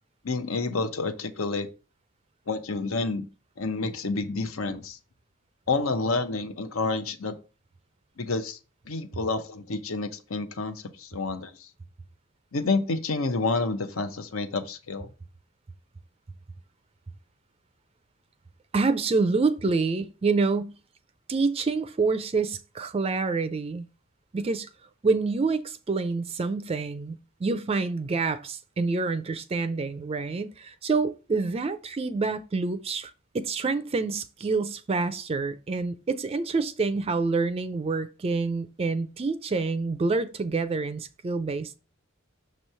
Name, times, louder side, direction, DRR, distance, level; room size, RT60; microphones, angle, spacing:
voice 1, 0.2-1.7 2.5-3.3 3.6-5.0 5.7-7.3 8.2-8.6 8.9-11.7 12.5-15.1, left 3 dB, 75° left, 0.8 m, -29 dB
voice 2, 18.7-20.7 21.3-23.8 24.3-24.7 25.0-41.7, right 4 dB, 30° right, 0.4 m, -27 dB
6.6 x 3.1 x 5.5 m
head